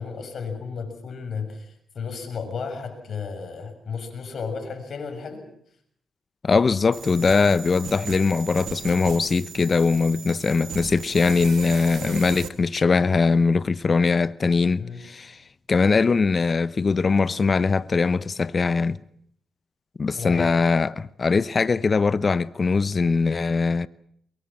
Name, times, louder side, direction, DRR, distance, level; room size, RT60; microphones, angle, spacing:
voice 1, 0.0-5.5 14.8-15.0 20.2-20.6, left 5 dB, 60° left, 6.9 m, -33 dB
voice 2, 6.4-15.4 15.7-19.0 20.0-23.9, left 4 dB, 45° left, 0.9 m, -21 dB
sound 1, 6.9-12.5, right 8 dB, 70° right, 2.3 m, -37 dB
23.5 x 22.5 x 7.5 m
supercardioid pair, 55°, 0 cm